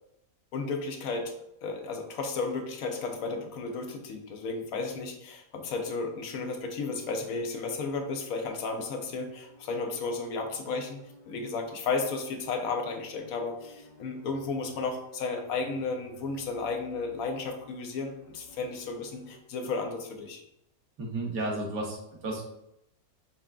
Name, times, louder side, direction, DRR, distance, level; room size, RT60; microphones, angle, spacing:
voice 1, 0.5-1.3 1.6-20.4, left 4 dB, 65° left, 3 dB, 1.0 m, -33 dB
sound 1, 6.9-19.4, right 1 dB, 50° left, 0.5 m, -54 dB
voice 2, 21.0-22.4, right 2 dB, 75° right, -1 dB, 1.6 m, -33 dB
5.7 x 3.6 x 2.3 m, 0.81 s
omnidirectional pair, 1.7 m